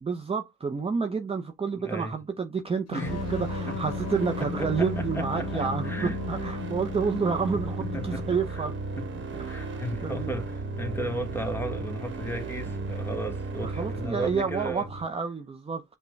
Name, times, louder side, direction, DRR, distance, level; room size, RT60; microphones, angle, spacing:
voice 1, 0.0-5.9 6.3-8.7 9.4-10.4 13.6-15.8, right 5 dB, 20° right, 0.6 m, -29 dB
voice 2, 1.7-2.1 2.9-3.2 3.7-6.2 7.8-8.6 9.0-14.9, right 1 dB, 10° left, 1.3 m, -35 dB
sound 1, 2.9-8.5, left 10 dB, 60° left, 0.7 m, -37 dB
sound 2, 3.1-15.0, right 3 dB, 40° right, 1.2 m, -35 dB
5.8 x 2.2 x 3.1 m
cardioid pair, 90°, 30 cm